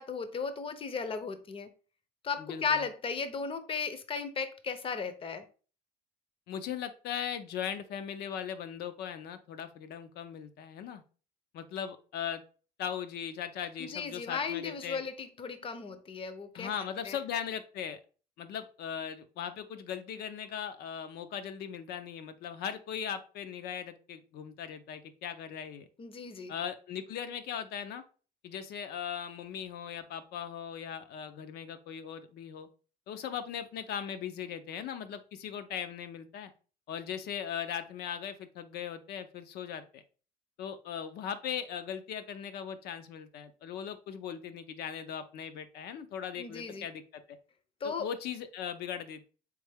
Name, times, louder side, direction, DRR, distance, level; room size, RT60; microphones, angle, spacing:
voice 1, 0.0-1.7 2.2-5.4 13.8-16.7 17.0-17.2 26.0-26.5 46.4-46.9 47.8-48.1, left 5 dB, 30° left, 0.6 m, -35 dB
voice 2, 2.4-2.8 6.5-11.0 11.5-12.4 12.8-15.0 16.5-18.0 18.4-25.9 26.5-28.0 28.4-32.7 33.1-36.5 36.9-40.0 40.6-47.4 47.8-49.3, left 8 dB, 70° left, 0.6 m, -39 dB
3.6 x 3.3 x 3.4 m
cardioid pair, 110°, 17 cm